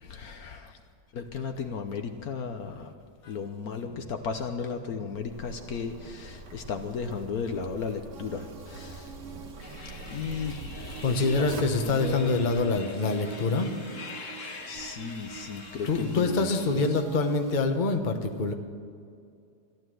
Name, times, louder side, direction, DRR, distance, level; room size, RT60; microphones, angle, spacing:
voice 1, 0.0-0.7 1.1-2.9 3.3-9.1 10.1-12.4 14.7-16.4 16.7-16.8, left 5 dB, 65° left, 6 dB, 1.3 m, -35 dB
Zipper (clothing), 5.1-12.7, right 2 dB, 70° right, 2.3 m, -44 dB
sound 1, 8.1-17.5, right 9 dB, 45° right, 0.8 m, -43 dB
sound 2, 9.6-16.9, left 4 dB, 50° left, 1.7 m, -45 dB
voice 2, 11.0-13.7 15.8-18.5, left 3 dB, 30° left, 5 dB, 1.0 m, -26 dB
15.0 x 12.0 x 7.8 m, 2.3 s
omnidirectional pair, 1.9 m